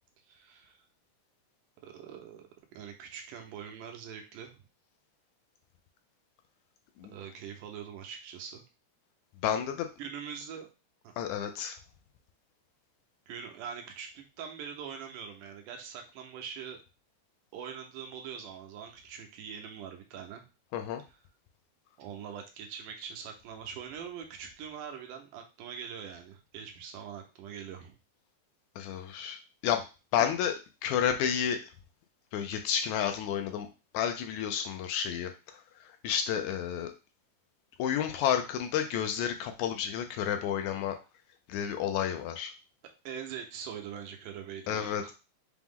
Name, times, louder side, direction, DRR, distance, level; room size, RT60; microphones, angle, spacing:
voice 1, 0.2-0.9 1.8-4.7 7.1-8.6 10.0-10.7 11.0-11.1 13.3-16.8 17.5-20.5 22.0-28.0 43.0-45.1, right 7 dB, 85° right, 3 dB, 2.3 m, -43 dB
voice 2, 9.4-9.9 11.2-11.8 20.7-21.0 28.8-29.8 30.1-31.6 32.3-33.7 33.9-36.9 37.8-41.0 41.5-42.5 44.7-45.1, left 9 dB, 80° left, 6 dB, 1.8 m, -31 dB
5.8 x 2.0 x 3.5 m, 0.30 s
omnidirectional pair, 3.6 m